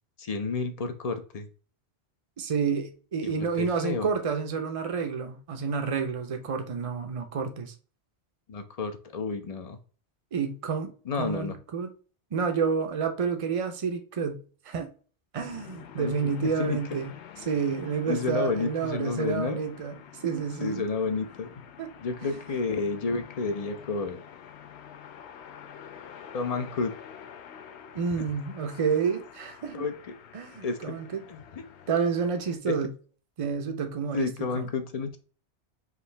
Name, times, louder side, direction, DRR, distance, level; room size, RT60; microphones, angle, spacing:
voice 1, 0.2-1.5 3.2-4.1 8.5-9.8 11.1-11.6 16.0-16.8 18.1-19.6 20.6-21.5 22.0-24.2 26.3-26.9 29.7-29.9 30.6-31.0 31.3-31.6 32.7-32.8 34.1-35.2, left 4 dB, 40° left, 0.6 m, -31 dB
voice 2, 2.4-7.7 10.3-10.9 11.2-11.9 12.3-14.9 15.3-17.1 17.4-20.0 20.2-20.8 21.8-21.9 27.9-29.8 30.3-31.2 31.9-32.9 33.4-34.7, right 6 dB, 35° right, 0.6 m, -29 dB
sound 1, 15.4-32.6, left 8 dB, 75° left, 0.9 m, -47 dB
4.9 x 2.8 x 3.2 m
omnidirectional pair, 1.2 m